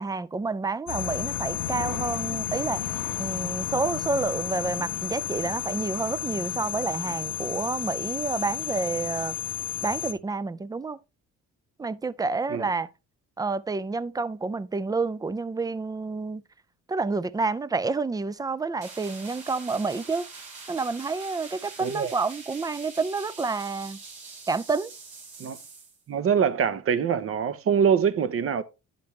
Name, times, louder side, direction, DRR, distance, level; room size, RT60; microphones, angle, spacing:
voice 1, 0.0-9.4 9.8-11.0 11.8-12.9 13.4-16.4 16.9-20.2 20.7-24.0 24.5-24.9, right 4 dB, 15° right, 0.4 m, -29 dB
sound 1, 0.9-10.1, left 11 dB, 90° left, 1.1 m, -32 dB
sound 2, 18.8-26.0, right 4 dB, 80° right, 2.9 m, -44 dB
voice 2, 21.8-22.1 25.4-25.6 26.1-28.6, right 7 dB, 50° right, 0.8 m, -24 dB
10.0 x 5.2 x 3.1 m
cardioid pair, 90°, 30 cm